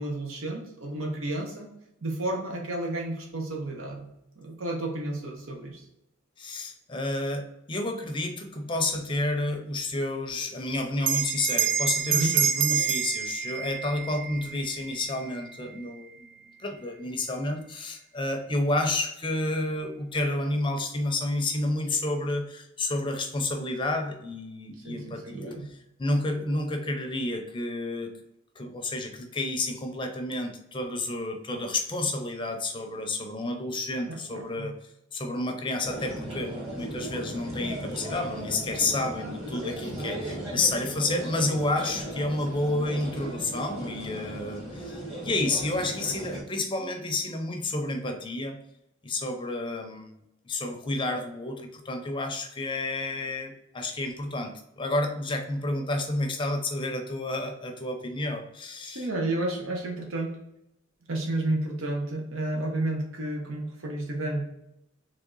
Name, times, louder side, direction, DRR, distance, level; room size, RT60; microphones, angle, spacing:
voice 1, 0.0-1.7 2.0-5.8 12.1-12.4 12.8-12.9 24.8-25.7 34.1-34.7 58.9-60.4 61.1-64.5, right 1 dB, 75° right, 1 dB, 0.9 m, -31 dB
voice 2, 6.4-16.3 16.6-28.1 28.6-34.7 35.1-48.6 49.0-50.2 50.5-59.1, left 2 dB, 25° left, 4 dB, 0.5 m, -30 dB
Bell, 11.0-15.9, right 8 dB, 55° right, 0.3 m, -28 dB
sound 1, 35.8-46.4, right 1 dB, 30° right, 1.6 m, -36 dB
3.6 x 3.3 x 3.8 m, 0.83 s
head